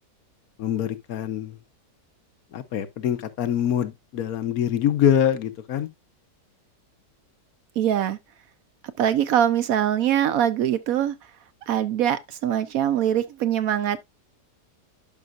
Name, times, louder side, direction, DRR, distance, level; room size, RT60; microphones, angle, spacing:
voice 1, 0.6-1.6 2.5-5.9, left 9 dB, 65° left, 1.2 m, -24 dB
voice 2, 7.8-8.2 9.0-11.2 11.7-14.0, right 10 dB, 70° right, 0.9 m, -23 dB
11.0 x 5.6 x 2.5 m
omnidirectional pair, 1.8 m